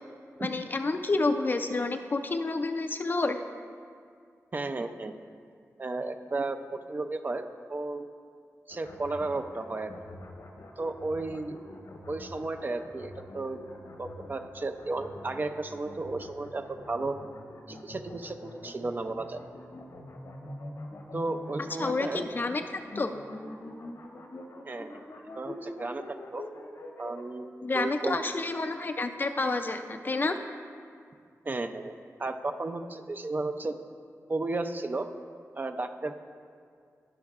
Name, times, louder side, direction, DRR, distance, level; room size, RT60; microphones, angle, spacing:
voice 1, 0.4-3.4 21.8-22.6 23.0-23.2 27.6-30.4, left 3 dB, 35° left, 7 dB, 0.4 m, -29 dB
voice 2, 4.5-5.1 5.8-7.4 7.7-8.1 8.7-9.9 10.8-11.6 12.1-13.7 14.0-17.2 17.7-19.4 21.1-22.5 24.7-25.0 25.4-26.4 27.0-28.2 31.5-33.8 34.3-35.1 35.5-36.2, right 3 dB, 35° right, 7 dB, 0.4 m, -34 dB
sound 1, 8.7-27.2, left 1 dB, 65° left, 1.0 m, -45 dB
18.5 x 6.3 x 2.4 m, 2.2 s
wide cardioid pair, 140°, 6 cm